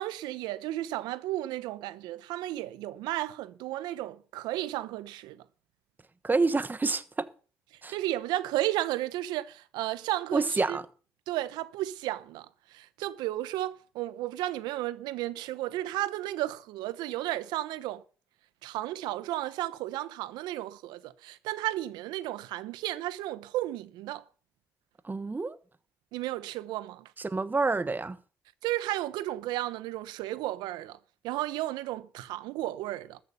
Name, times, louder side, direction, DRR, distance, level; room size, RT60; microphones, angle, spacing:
voice 1, 0.0-5.4 7.9-10.8 11.3-12.5 12.7-18.0 18.6-24.2 26.1-27.1 28.6-31.0 31.2-33.2, right 15 dB, 85° right, 0.9 m, -33 dB
voice 2, 6.2-7.3 7.8-7.9 10.3-10.8 25.0-25.5 27.2-28.2, right 3 dB, 25° right, 1.3 m, -28 dB
13.5 x 8.1 x 7.0 m
supercardioid pair, 65°, 7 cm